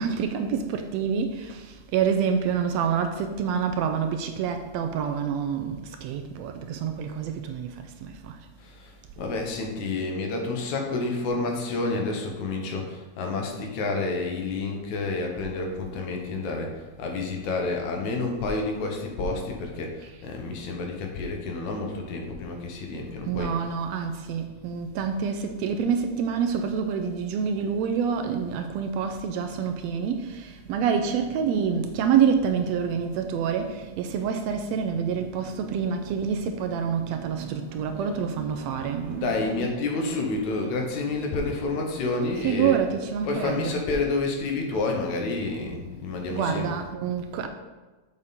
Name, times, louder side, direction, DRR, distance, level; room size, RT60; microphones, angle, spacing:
voice 1, 0.0-1.6 1.9-7.7 8.0-8.1 23.3-39.7 40.1-40.3 42.4-43.9 46.3-47.5, right 7 dB, 80° right, 1.7 m, -27 dB
voice 2, 8.6-23.5 38.9-42.8 43.2-46.7, left 3 dB, 80° left, 2.5 m, -29 dB
7.2 x 6.4 x 4.1 m
omnidirectional pair, 3.3 m